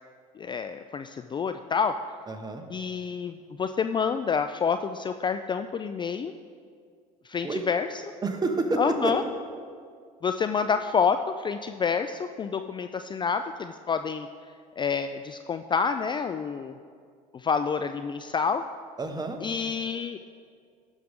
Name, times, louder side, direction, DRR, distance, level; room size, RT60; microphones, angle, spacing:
voice 1, 0.4-2.0 2.7-6.3 7.3-7.9 8.8-9.2 10.2-14.3 14.8-16.8 17.3-18.6 19.4-20.2, left 6 dB, 25° left, 9 dB, 0.4 m, -28 dB
voice 2, 2.3-2.6 7.4-7.6 8.2-9.3 19.0-19.4, right 3 dB, 20° right, 5 dB, 1.3 m, -29 dB
15.5 x 6.4 x 3.7 m, 2.1 s
hypercardioid pair, 70°, 19 cm